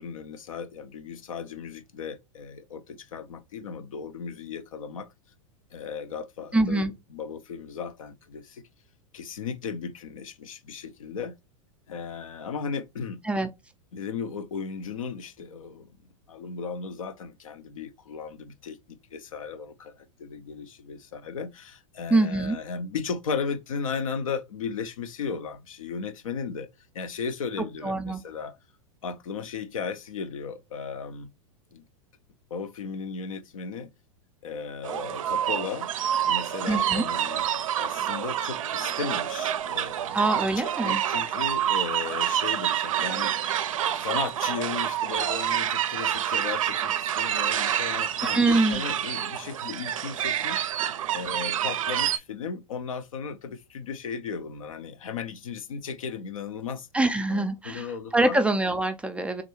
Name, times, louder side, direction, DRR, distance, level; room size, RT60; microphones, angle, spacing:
voice 1, 0.0-5.1 5.7-8.6 9.1-11.3 11.9-13.2 13.9-15.9 16.3-26.7 26.9-28.6 29.0-31.3 31.7-31.8 32.5-33.9 34.4-35.9 36.2-37.4 37.8-40.2 40.6-43.4 44.0-50.7 51.1-56.9 57.3-58.4, left 6 dB, 80° left, 0.5 m, -36 dB
voice 2, 6.5-6.9 13.2-13.5 22.1-22.6 27.8-28.2 36.7-37.0 40.1-41.0 48.3-48.8 56.9-59.4, right 2 dB, 5° right, 0.3 m, -24 dB
sound 1, 34.8-52.2, right 10 dB, 80° right, 0.4 m, -28 dB
3.5 x 2.2 x 3.0 m
hypercardioid pair, 105°, 17 cm